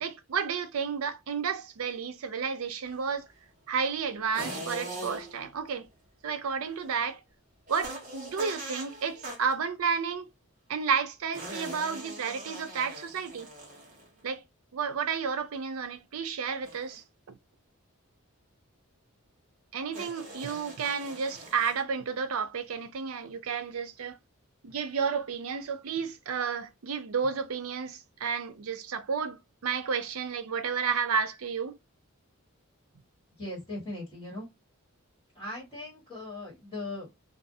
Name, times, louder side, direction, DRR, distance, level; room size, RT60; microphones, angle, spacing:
voice 1, 0.0-3.3 3.7-5.9 6.2-7.2 7.7-10.3 10.7-13.5 14.2-14.4 14.7-17.3 19.7-24.2 24.6-31.8, right 6 dB, 75° right, 0.5 m, -31 dB
sound 1, 4.3-5.5 7.7-9.6 11.3-14.2 16.6-17.0 19.9-21.8, right 1 dB, 35° right, 1.0 m, -41 dB
voice 2, 33.4-34.5 35.3-37.3, left 2 dB, 15° left, 1.4 m, -39 dB
2.5 x 2.3 x 2.6 m
head